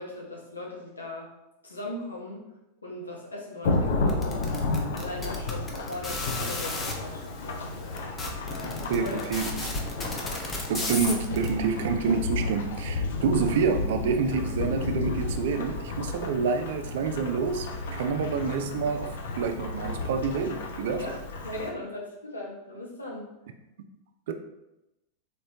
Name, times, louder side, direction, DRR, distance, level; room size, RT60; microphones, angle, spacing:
voice 1, 0.0-1.3 1.6-2.4 2.8-4.5 5.0-7.8 8.5-9.2 10.8-10.9 21.0-23.2, left 1 dB, 80° left, -2 dB, 0.9 m, -39 dB
Thunderstorm / Rain, 3.6-21.7, left 3 dB, 60° left, 0.5 m, -32 dB
sound 1, 4.1-6.9 7.6-7.7 8.0-11.5, left 2 dB, 20° left, 0.6 m, -33 dB
voice 2, 8.9-9.8 10.7-17.7 17.9-21.0 24.3-24.4, right 5 dB, 55° right, 7 dB, 0.3 m, -28 dB
3.5 x 3.0 x 2.8 m, 0.93 s
figure-of-eight pair, 90°, 0 cm